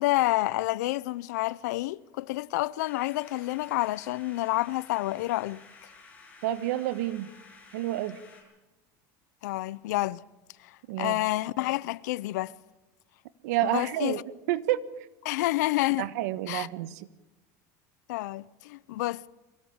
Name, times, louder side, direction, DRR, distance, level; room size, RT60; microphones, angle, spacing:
voice 1, 0.0-5.6 9.4-10.2 11.0-12.5 13.6-14.2 15.2-16.1 16.5-16.7 18.1-19.2, left 18 dB, 85° left, 0.6 m, -29 dB
sound 1, 2.8-8.4, left 4 dB, 15° left, 7.6 m, -53 dB
voice 2, 6.4-7.3 7.7-8.2 10.9-11.2 13.4-14.2 14.5-14.8 16.0-17.1, right 14 dB, 80° right, 1.2 m, -29 dB
23.5 x 17.0 x 7.2 m
supercardioid pair, 140°, 9 cm